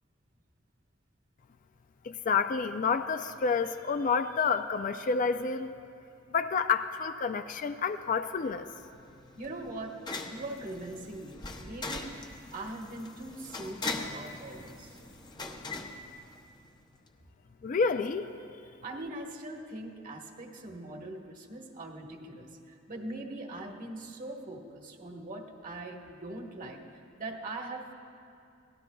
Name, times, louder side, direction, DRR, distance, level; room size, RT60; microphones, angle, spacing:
voice 1, 2.0-5.7 6.3-8.7 17.6-18.3, left 5 dB, 40° left, 10 dB, 0.4 m, -29 dB
sound 1, 8.5-16.8, left 3 dB, 20° left, 0.7 m, -41 dB
voice 2, 9.4-9.9 10.2-12.1 12.5-15.0 18.8-27.9, right 2 dB, 40° right, 1 dB, 1.3 m, -41 dB
23.5 x 17.5 x 2.3 m, 2.5 s
head